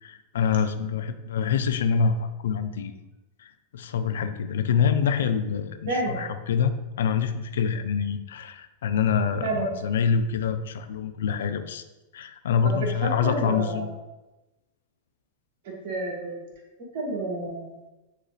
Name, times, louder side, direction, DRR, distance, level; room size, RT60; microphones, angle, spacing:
voice 1, 0.0-3.0 3.4-11.8 12.1-13.9, left 6 dB, 60° left, 9 dB, 0.5 m, -26 dB
voice 2, 5.9-6.2 9.4-9.7 12.6-13.9 15.6-16.3 16.9-17.8, right 2 dB, 50° right, -1 dB, 1.8 m, -29 dB
8.7 x 3.8 x 3.1 m, 1.1 s
figure-of-eight pair, 90°, 0 cm